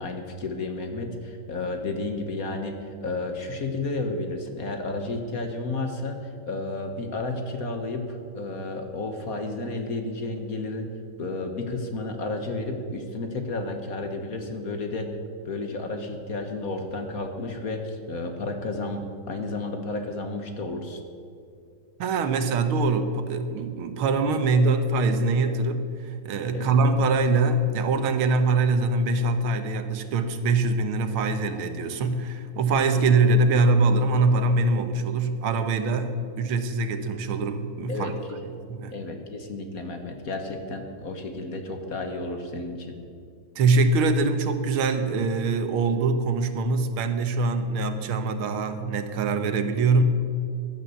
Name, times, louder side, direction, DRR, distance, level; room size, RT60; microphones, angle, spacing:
voice 1, 0.0-10.9 11.2-15.1 15.4-21.0 26.5-26.7 32.7-32.8 37.9-38.4 38.9-43.0, left 2 dB, 50° left, 5 dB, 1.5 m, -32 dB
voice 2, 22.0-38.1 38.7-38.9 43.6-50.0, right 3 dB, 85° right, 8 dB, 1.9 m, -23 dB
15.0 x 11.0 x 7.0 m, 2.4 s
omnidirectional pair, 2.3 m